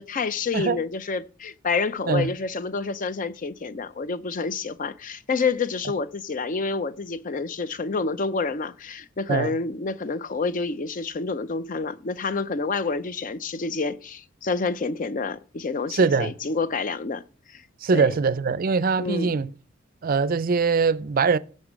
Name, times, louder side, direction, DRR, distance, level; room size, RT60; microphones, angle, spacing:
voice 1, 0.0-17.2 17.5-17.6 17.9-18.1 19.0-19.4, left 4 dB, 40° left, 0.5 m, -28 dB
voice 2, 15.9-16.3 17.8-19.5 20.0-21.4, right 4 dB, 45° right, 0.4 m, -22 dB
15.5 x 5.4 x 5.1 m
head